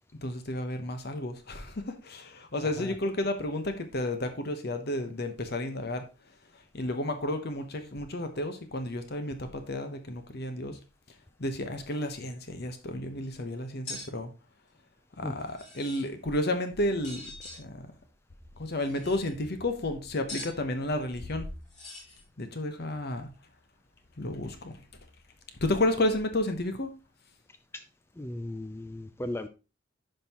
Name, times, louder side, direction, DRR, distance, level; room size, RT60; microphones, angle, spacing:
voice 1, 0.2-6.0 6.7-10.8 11.4-14.3 15.2-17.2 17.5-17.9 18.6-21.5 22.4-23.3 24.2-24.8 25.6-26.9, left 1 dB, 55° left, 7 dB, 1.0 m, -32 dB
sound 1, 13.9-14.1 15.4-16.1 17.0-17.6 18.7-19.3 20.3-20.6 21.7-22.2, left 2 dB, 35° left, 3.7 m, -42 dB
voice 2, 28.2-29.5, left 1 dB, 15° left, 9 dB, 0.4 m, -36 dB
10.5 x 5.5 x 2.9 m, 0.29 s
head